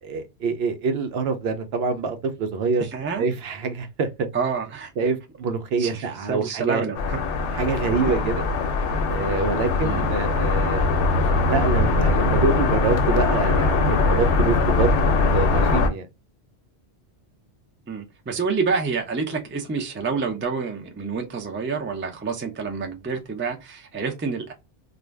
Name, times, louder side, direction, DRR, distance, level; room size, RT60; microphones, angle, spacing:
voice 1, 0.0-2.9 3.2-4.3 5.0-6.9 7.5-8.4 9.1-11.1 11.4-14.9 15.3-16.1, right 4 dB, 70° right, 0.8 m, -26 dB
voice 2, 2.8-3.3 4.3-4.9 5.8-7.2 7.5-7.6 7.9-8.1 9.8-10.1 17.9-24.5, right 5 dB, 20° right, 0.3 m, -28 dB
sound 1, 6.9-15.9, left 3 dB, 85° left, 0.9 m, -21 dB
2.5 x 2.1 x 3.1 m
omnidirectional pair, 1.1 m